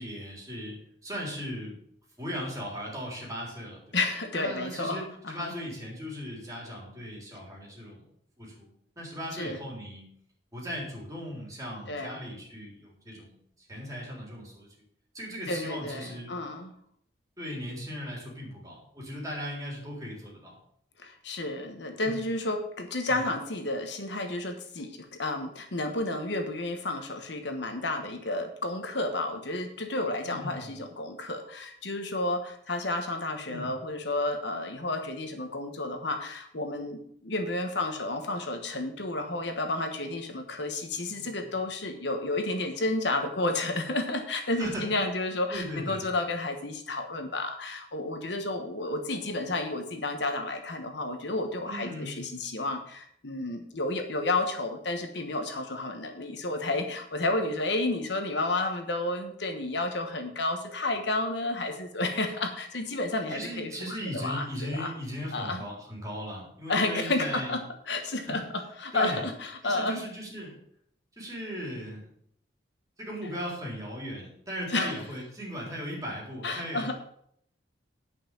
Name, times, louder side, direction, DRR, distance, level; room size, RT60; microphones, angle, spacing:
voice 1, 0.0-1.8 2.2-4.0 4.3-8.1 8.4-10.1 10.5-14.7 15.1-16.4 17.4-20.6 22.0-22.5 23.1-23.3 30.2-30.8 33.5-33.7 41.1-41.4 44.6-44.9 45.5-46.1 51.7-52.5 63.3-67.6 68.3-68.4 68.9-69.2 69.6-70.6 71.2-72.1 73.0-76.9, equal, 15° right, -3 dB, 3.7 m, -38 dB
voice 2, 3.9-5.5 9.4-9.6 11.9-12.2 15.5-16.7 21.0-63.7 64.1-64.9 65.3-65.6 66.7-70.0 74.7-74.9 76.4-76.9, left 2 dB, 65° left, 5 dB, 1.2 m, -31 dB
9.7 x 5.6 x 7.5 m, 0.68 s
head